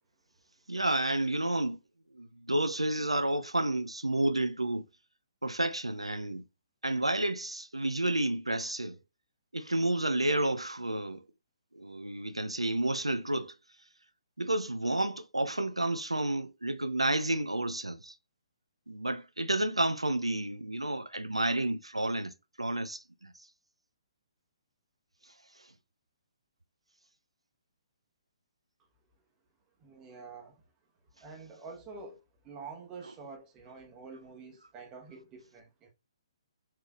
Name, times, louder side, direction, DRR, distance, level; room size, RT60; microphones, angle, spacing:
voice 1, 0.7-1.8 2.1-4.8 5.4-6.4 6.8-9.0 9.5-11.2 11.7-13.5 14.4-18.1 18.9-22.3 22.6-23.3, right 1 dB, 85° right, 0.5 m, -30 dB
voice 2, 29.8-30.6 31.2-35.9, right 4 dB, 20° right, 1.1 m, -47 dB
5.7 x 3.1 x 2.4 m
figure-of-eight pair, 130°, 3 cm